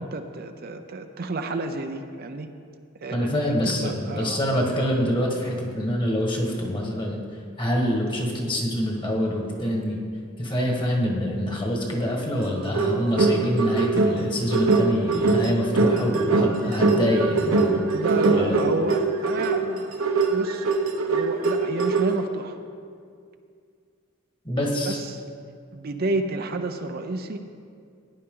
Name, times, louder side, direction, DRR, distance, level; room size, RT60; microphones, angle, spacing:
voice 1, 0.0-2.5 3.0-4.4 17.9-19.9 20.3-20.7 21.1-22.6 24.9-25.2 25.7-27.4, right 2 dB, 45° right, 6 dB, 0.6 m, -30 dB
voice 2, 3.1-7.2 7.6-10.0 10.4-17.8 18.3-18.8 24.4-25.0, equal, 25° left, -1 dB, 1.6 m, -25 dB
sound 1, 12.4-22.2, right 3 dB, 75° right, 0.9 m, -22 dB
14.5 x 9.9 x 3.8 m, 2.3 s
head